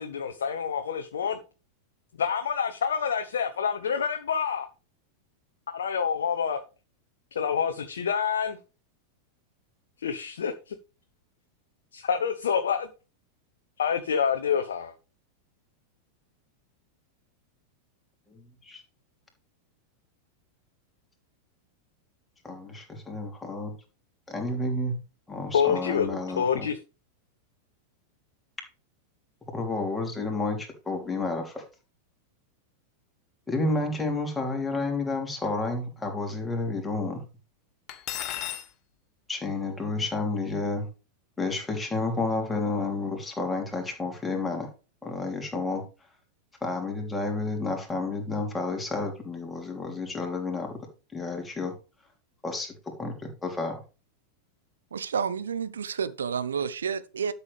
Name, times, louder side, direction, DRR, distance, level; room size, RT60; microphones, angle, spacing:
voice 1, 0.0-1.4 2.2-4.7 5.7-6.6 7.3-8.6 10.0-10.7 11.9-12.9 13.8-14.9 25.5-26.8, left 7 dB, 65° left, 0.9 m, -27 dB
voice 2, 18.3-18.8 22.4-23.7 24.3-25.0 25.3-26.7 29.5-31.6 33.5-37.2 39.3-40.9 41.4-44.7 45.0-45.8 46.6-50.8 51.1-51.7 52.4-53.8, left 3 dB, 10° left, 3.4 m, -30 dB
Cutlery silverware, 37.9-38.7, left 12 dB, 35° left, 1.3 m, -33 dB
voice 3, 54.9-57.3, right 6 dB, 70° right, 0.8 m, -30 dB
12.0 x 7.0 x 3.5 m
figure-of-eight pair, 90°, 0 cm